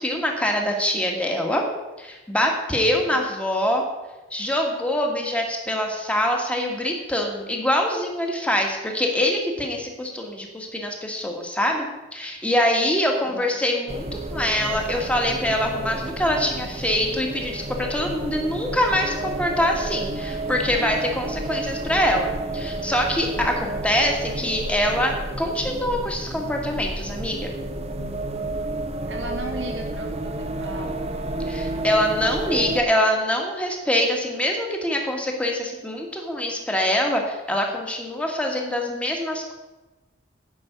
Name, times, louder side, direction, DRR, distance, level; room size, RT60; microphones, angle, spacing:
voice 1, 0.0-1.6 2.0-3.8 4.3-11.9 12.1-27.5 31.5-39.5, left 1 dB, 5° left, 1 dB, 1.7 m, -24 dB
voice 2, 2.8-3.3 13.3-13.6 29.1-31.1, right 1 dB, 85° right, 2 dB, 2.1 m, -36 dB
sound 1, 13.9-32.8, right 2 dB, 35° right, 0.9 m, -31 dB
9.6 x 6.1 x 8.0 m, 1.1 s
head